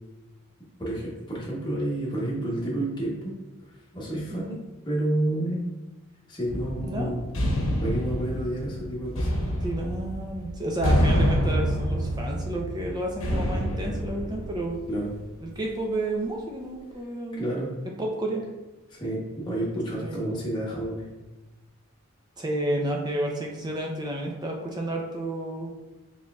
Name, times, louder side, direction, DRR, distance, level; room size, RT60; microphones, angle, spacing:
voice 1, 0.8-3.4 3.6-5.6 6.3-7.2 7.8-9.4 14.9-15.1 17.3-17.7 18.9-21.1, right 1 dB, 20° left, -5 dB, 0.9 m, -30 dB
sound 1, 6.5-15.1, equal, 65° left, 0.9 m, -27 dB
voice 2, 6.8-7.3 9.6-14.8 15.4-17.4 18.0-18.5 20.0-20.2 22.4-25.7, right 1 dB, 20° right, -1 dB, 0.5 m, -31 dB
4.2 x 3.7 x 2.3 m, 1.1 s
head